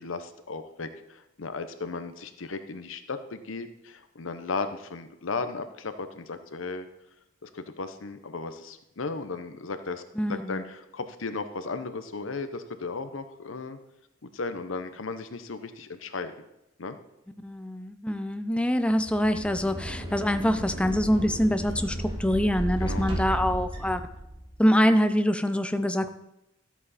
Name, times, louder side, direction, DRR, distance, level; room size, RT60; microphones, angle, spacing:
voice 1, 0.0-6.9 7.4-10.0 10.3-13.8 14.3-16.3 16.8-17.0 22.8-23.5, left 4 dB, 75° left, 10 dB, 0.8 m, -35 dB
voice 2, 10.2-10.6 17.4-24.0 24.6-26.1, equal, 5° left, 9 dB, 0.6 m, -25 dB
sound 1, 19.0-24.6, right 1 dB, 25° right, 2.4 m, -34 dB
13.0 x 8.3 x 4.2 m, 0.89 s
head